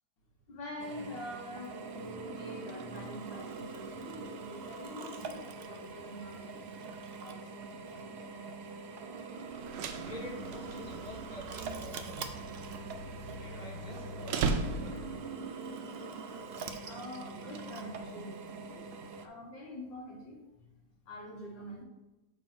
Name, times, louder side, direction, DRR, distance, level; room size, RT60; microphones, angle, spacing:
voice 1, 0.5-6.7 7.2-8.6 16.8-18.4 18.7-20.6 21.1-21.8, left 1 dB, 90° left, 0 dB, 2.3 m, -45 dB
Drill, 0.8-19.3, right 4 dB, 75° right, 0.5 m, -43 dB
sound 1, 9.5-15.3, right 4 dB, 90° right, 1.3 m, -38 dB
voice 2, 10.0-12.3 13.4-15.3 16.8-16.9, left 1 dB, 25° left, 0 dB, 1.1 m, -47 dB
sound 2, 11.6-14.0, right 4 dB, 55° right, 3.1 m, -56 dB
7.0 x 3.9 x 6.1 m, 1.0 s
omnidirectional pair, 1.9 m